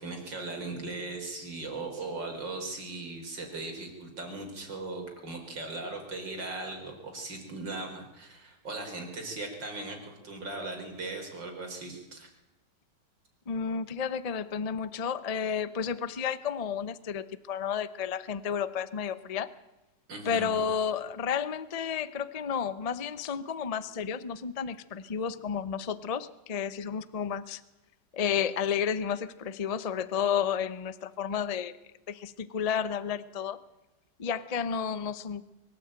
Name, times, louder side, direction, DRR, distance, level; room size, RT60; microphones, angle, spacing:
voice 1, 0.0-12.3 20.1-20.5, right 2 dB, 85° right, 3 dB, 4.9 m, -38 dB
voice 2, 13.5-19.5 20.2-27.6 28.1-31.7 32.1-33.6 34.2-35.4, left 7 dB, 35° left, 15 dB, 0.6 m, -31 dB
23.5 x 13.0 x 8.8 m, 1.0 s
omnidirectional pair, 1.9 m